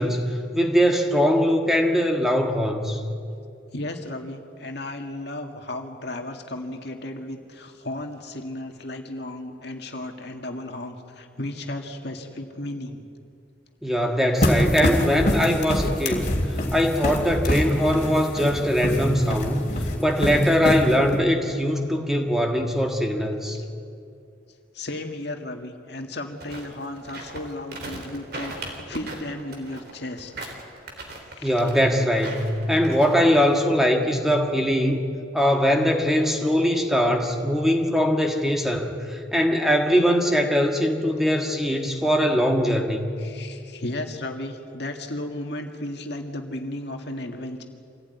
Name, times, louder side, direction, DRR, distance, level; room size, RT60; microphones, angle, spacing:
voice 1, 0.0-3.0 13.8-16.3 16.7-19.7 20.0-23.6 31.4-35.0 35.3-43.1, equal, ahead, 2 dB, 1.6 m, -21 dB
voice 2, 3.7-13.0 23.5-23.7 24.7-30.6 31.3-31.5 43.2-47.6, left 1 dB, 60° left, 3 dB, 2.0 m, -34 dB
sound 1, 14.4-21.2, equal, 40° left, 3.0 m, -25 dB
sound 2, 26.3-33.6, right 2 dB, 55° right, 3.5 m, -38 dB
26.0 x 17.0 x 9.5 m, 2.4 s
head